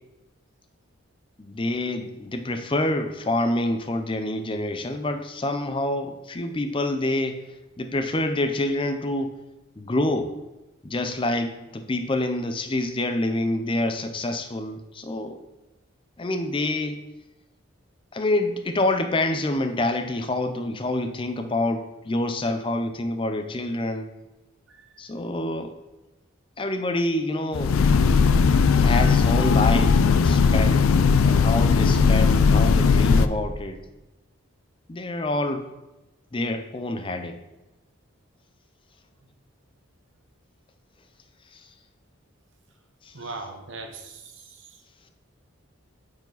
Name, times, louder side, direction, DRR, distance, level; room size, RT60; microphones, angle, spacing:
voice 1, 1.4-7.4 7.8-9.4 9.8-10.4 10.8-15.4 16.2-17.0 18.1-24.1 25.0-25.8 26.6-27.8 28.8-30.9 31.2-33.8 34.9-35.7 36.3-37.4 41.5-41.6 43.1-43.2, left 1 dB, 25° left, 8 dB, 0.5 m, -27 dB
Train, 27.5-33.3, left 5 dB, 80° left, 0.4 m, -18 dB
voice 2, 43.1-44.7, right 3 dB, 65° right, 3 dB, 1.1 m, -39 dB
9.0 x 4.9 x 4.0 m, 1.0 s
head